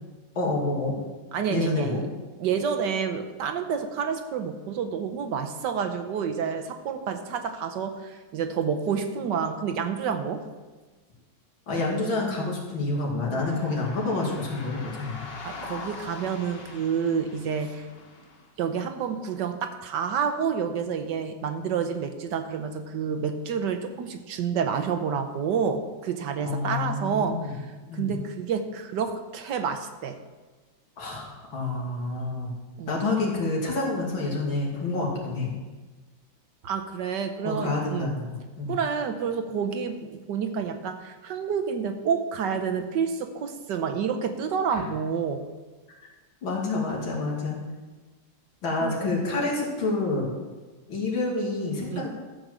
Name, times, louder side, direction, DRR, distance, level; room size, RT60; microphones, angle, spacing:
voice 1, 0.4-0.9 1.5-2.0 11.7-15.2 26.4-27.6 27.9-28.1 31.0-32.5 32.9-35.5 37.4-38.8 44.7-44.8 46.4-47.6 48.6-50.3 50.9-52.1, left 3 dB, 90° left, -3 dB, 3.1 m, -28 dB
voice 2, 1.3-2.0 2.4-10.4 15.4-17.9 18.6-30.2 32.8-33.0 36.6-38.1 38.7-45.4 48.8-48.9 51.9-52.0, right 6 dB, 70° right, 7 dB, 1.3 m, -29 dB
sound 1, 13.3-18.5, left 3 dB, 40° left, 1.1 m, -42 dB
13.0 x 5.2 x 7.4 m, 1.3 s
omnidirectional pair, 2.1 m